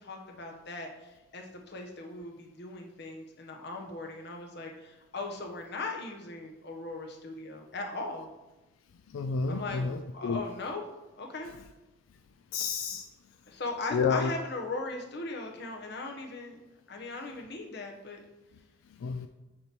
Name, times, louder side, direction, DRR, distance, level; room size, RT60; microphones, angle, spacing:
voice 1, 0.0-8.3 9.5-10.8 11.2-11.5 13.5-16.6 16.9-18.2, left 3 dB, 55° left, 2 dB, 1.0 m, -39 dB
voice 2, 9.1-10.4 12.5-13.1 13.9-14.3 19.0-19.3, left 5 dB, 90° left, 8 dB, 0.4 m, -30 dB
6.4 x 3.0 x 5.8 m, 1.1 s
head